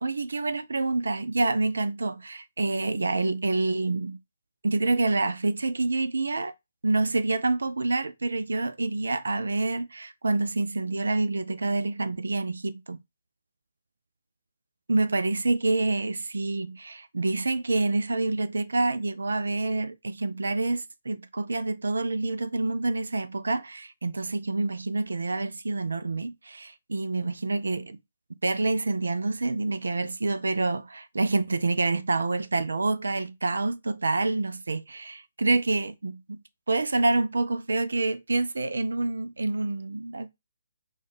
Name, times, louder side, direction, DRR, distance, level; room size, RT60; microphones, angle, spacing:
voice 1, 0.0-4.2 4.6-6.5 6.8-13.0 14.9-28.0 28.4-36.4 36.7-40.3, right 2 dB, 65° right, 0.4 m, -27 dB
5.3 x 2.4 x 3.4 m
figure-of-eight pair, 140°, 0 cm